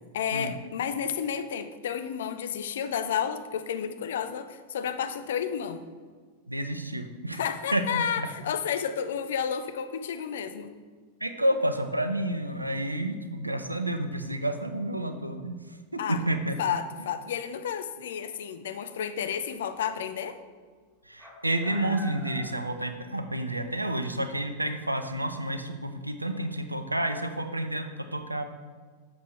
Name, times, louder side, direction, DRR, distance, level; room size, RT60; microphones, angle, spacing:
voice 1, 0.1-5.8 7.3-10.7 16.0-16.2 16.6-20.4, left 8 dB, 60° left, 10 dB, 0.6 m, -31 dB
voice 2, 6.5-7.4 7.7-8.3 11.2-15.6 15.9-16.6 21.1-28.4, right 1 dB, 85° right, 8 dB, 0.7 m, -30 dB
sound 1, 21.2-23.4 23.7-23.8 25.0-25.1, left 1 dB, ahead, 2.1 m, -46 dB
11.5 x 7.5 x 3.2 m, 1.5 s
figure-of-eight pair, 90°, 0 cm